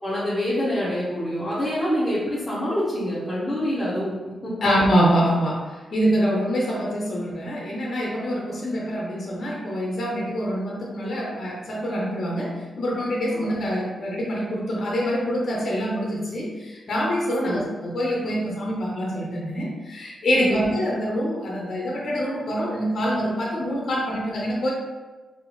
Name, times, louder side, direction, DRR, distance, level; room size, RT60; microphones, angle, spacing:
voice 1, 0.0-4.1 4.4-4.5 13.3-13.4 17.4-17.6 20.3-20.6, equal, 5° left, -13 dB, 1.3 m, -26 dB
voice 2, 4.6-24.7, equal, 55° left, -3 dB, 0.8 m, -25 dB
5.7 x 2.0 x 3.1 m, 1.3 s
wide cardioid pair, 120°, 0 cm